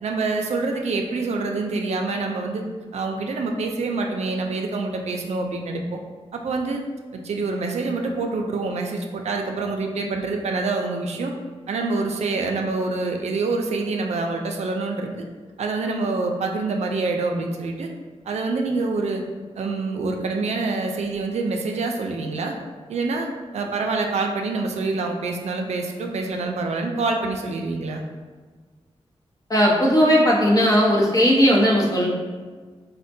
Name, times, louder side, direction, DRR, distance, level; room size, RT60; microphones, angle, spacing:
voice 1, 0.0-2.6 2.9-6.0 6.3-6.8 7.1-11.3 11.7-15.1 15.6-17.9 18.3-19.2 19.6-22.5 22.9-23.3 23.5-28.0, right 3 dB, 90° right, 2 dB, 0.4 m, -26 dB
voice 2, 29.5-32.1, equal, 35° left, -3 dB, 0.7 m, -17 dB
4.3 x 2.1 x 2.6 m, 1.5 s
wide cardioid pair, 95°, 11 cm